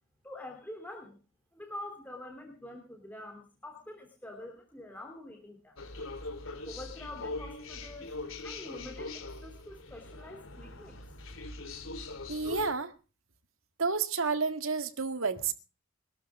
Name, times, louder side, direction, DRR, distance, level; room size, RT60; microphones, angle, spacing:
voice 1, 0.2-1.2 1.5-5.8 6.6-8.1 8.4-11.0, left 1 dB, 10° left, 3.1 m, -46 dB
sound 1, 5.8-12.7, left 3 dB, 85° left, 2.7 m, -42 dB
voice 2, 12.3-12.9 13.8-15.5, right 4 dB, 85° right, 1.9 m, -30 dB
23.0 x 12.5 x 3.6 m
head